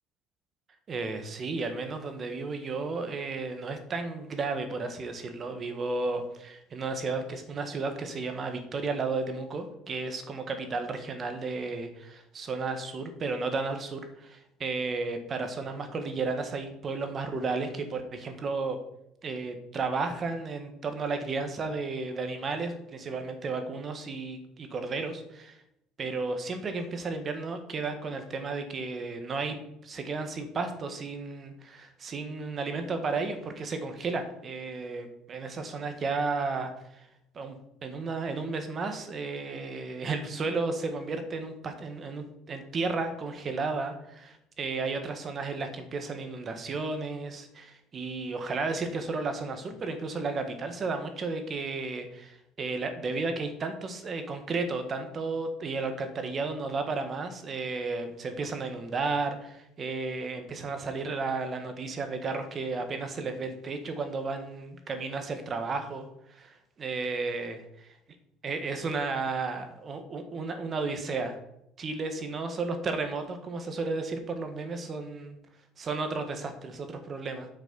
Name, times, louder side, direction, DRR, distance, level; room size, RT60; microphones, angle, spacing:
voice 1, 0.9-18.8 19.2-25.6 26.0-29.6 29.8-37.1 37.3-67.6 68.4-71.4 71.8-75.4 75.8-76.8 77.1-77.5, right 3 dB, 30° right, 7 dB, 1.4 m, -33 dB
8.5 x 6.1 x 6.8 m, 0.80 s
cardioid pair, 160°, 0 cm